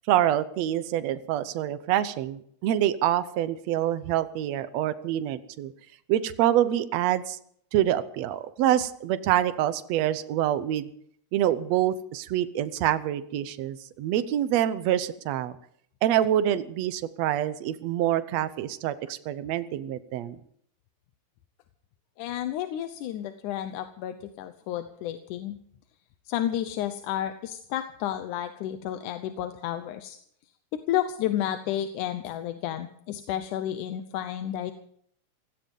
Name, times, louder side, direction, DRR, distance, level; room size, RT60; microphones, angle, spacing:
voice 1, 0.1-5.7 6.1-7.4 7.7-10.9 11.3-15.6 16.0-20.4, right 12 dB, 70° right, 13 dB, 2.0 m, -26 dB
voice 2, 22.2-25.6 26.3-30.2 30.7-34.7, left 11 dB, 90° left, 9 dB, 2.4 m, -31 dB
16.5 x 16.0 x 5.4 m, 0.65 s
omnidirectional pair, 3.4 m